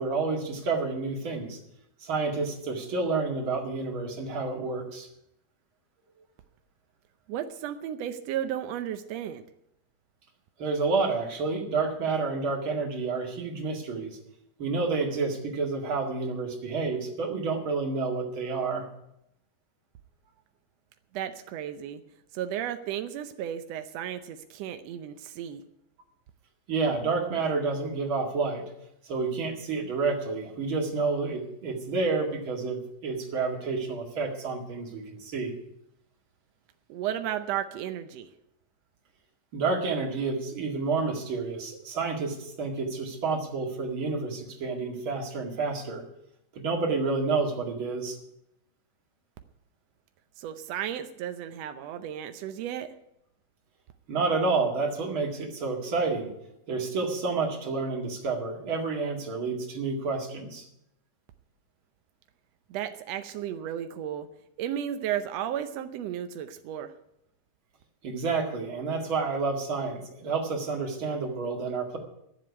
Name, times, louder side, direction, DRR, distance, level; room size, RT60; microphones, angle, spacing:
voice 1, 0.0-1.6 2.0-5.1 10.6-14.2 14.6-18.9 26.7-28.6 29.0-35.5 39.5-46.0 46.5-48.2 54.1-56.3 56.7-60.7 68.0-72.0, right 4 dB, 40° right, 1 dB, 2.5 m, -29 dB
voice 2, 7.3-9.4 21.1-22.0 22.3-25.6 36.9-38.3 50.4-52.9 62.7-64.3 64.6-66.9, right 10 dB, 85° right, 8 dB, 1.4 m, -34 dB
12.5 x 7.7 x 9.5 m, 0.81 s
omnidirectional pair, 3.8 m